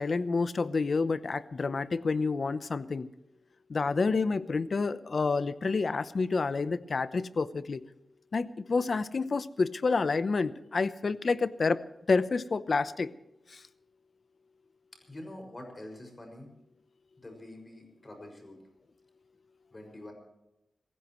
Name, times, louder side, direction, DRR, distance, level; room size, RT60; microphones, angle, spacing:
voice 1, 0.0-3.1 3.7-7.8 8.3-11.8 12.1-13.1 13.5-13.6, left 4 dB, 55° left, 14 dB, 0.8 m, -29 dB
voice 2, 15.1-16.5 17.2-18.6 19.7-20.1, left 1 dB, 30° left, 4 dB, 6.2 m, -46 dB
26.5 x 15.5 x 3.2 m, 0.90 s
wide cardioid pair, 90°, 0 cm